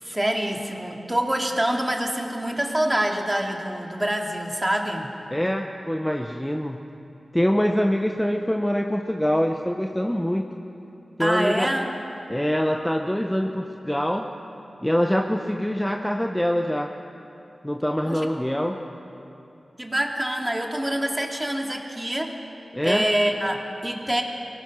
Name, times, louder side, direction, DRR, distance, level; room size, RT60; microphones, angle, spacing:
voice 1, 0.0-5.1 11.2-11.9 18.0-18.2 19.8-22.3 22.8-24.2, right 1 dB, 15° right, 1 dB, 2.5 m, -25 dB
voice 2, 5.3-6.8 7.3-10.5 11.2-11.7 12.3-14.3 14.8-16.9 17.6-18.8 22.7-23.1, equal, 5° left, 3 dB, 1.0 m, -24 dB
24.0 x 17.5 x 6.3 m, 2.9 s
cardioid pair, 55°, 0 cm